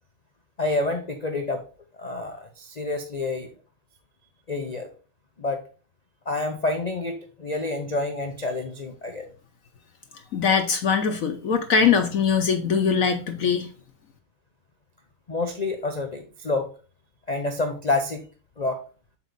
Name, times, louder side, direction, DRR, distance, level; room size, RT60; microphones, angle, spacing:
voice 1, 0.6-1.6 2.0-3.5 4.5-4.9 5.4-5.6 6.3-9.2 15.3-16.7 17.3-18.2 18.6-18.8, left 2 dB, 90° left, 4 dB, 0.3 m, -28 dB
voice 2, 10.3-13.7, left 6 dB, 60° left, 6 dB, 1.0 m, -22 dB
7.1 x 4.6 x 3.9 m, 0.37 s
omnidirectional pair, 2.0 m